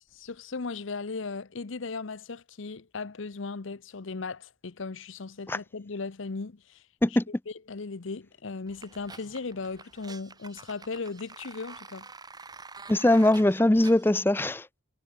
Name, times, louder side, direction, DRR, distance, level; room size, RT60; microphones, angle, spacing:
voice 1, 0.1-6.8 7.5-12.1, left 4 dB, 70° left, 0.8 m, -37 dB
sound 1, 8.7-14.1, right 4 dB, 20° right, 3.4 m, -48 dB
voice 2, 12.9-14.7, left 1 dB, 10° left, 0.4 m, -21 dB
head